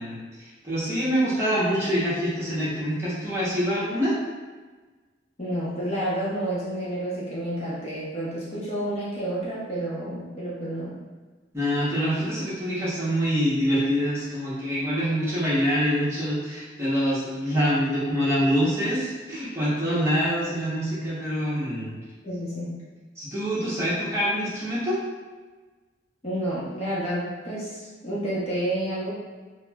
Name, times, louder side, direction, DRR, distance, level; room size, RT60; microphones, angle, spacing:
voice 1, 0.0-4.2 11.5-21.9 23.2-25.0, equal, 15° right, -10 dB, 0.9 m, -25 dB
voice 2, 5.4-11.0 22.2-22.8 26.2-29.1, right 1 dB, 35° left, -8 dB, 0.7 m, -30 dB
4.2 x 2.0 x 2.3 m, 1.4 s
head